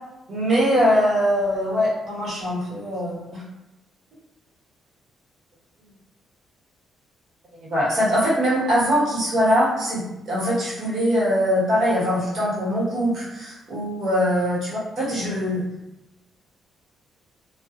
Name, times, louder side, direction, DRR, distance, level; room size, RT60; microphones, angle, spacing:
voice 1, 0.3-3.4 7.6-15.6, equal, 55° right, -7 dB, 1.2 m, -22 dB
2.5 x 2.1 x 2.4 m, 0.95 s
cardioid pair, 90°, 0 cm